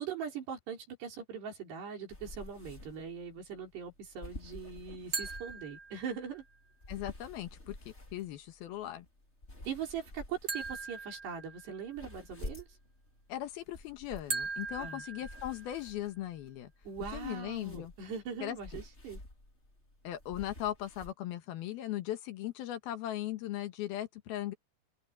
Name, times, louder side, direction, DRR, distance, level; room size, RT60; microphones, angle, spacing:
voice 1, 0.0-6.5 9.7-12.7 14.8-15.0 16.9-19.2, right 7 dB, 80° right, 7.0 m, -41 dB
sound 1, 2.1-21.1, left 1 dB, 15° left, 3.7 m, -51 dB
sound 2, 5.1-6.4 10.5-12.0 14.3-16.0, right 4 dB, 40° right, 1.4 m, -40 dB
voice 2, 6.9-9.1 13.3-16.7 17.1-17.9 18.4-18.8 20.0-24.5, left 13 dB, 70° left, 3.0 m, -38 dB
omnidirectional pair, 4.7 m